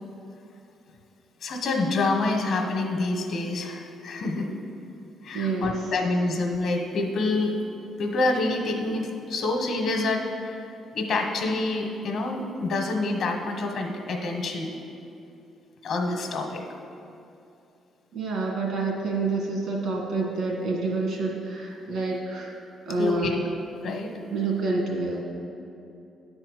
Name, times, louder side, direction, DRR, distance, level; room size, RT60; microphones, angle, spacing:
voice 1, 1.4-4.5 5.2-7.5 8.0-10.6 10.9-14.7 15.8-16.6 23.0-23.3 23.8-24.1, left 2 dB, 70° left, 3 dB, 1.2 m, -27 dB
voice 2, 5.3-5.7 18.1-22.6 22.8-23.4 24.3-25.2, right 3 dB, 75° right, -1 dB, 1.9 m, -28 dB
10.0 x 4.4 x 6.4 m, 2.7 s
cardioid pair, 90°, 0 cm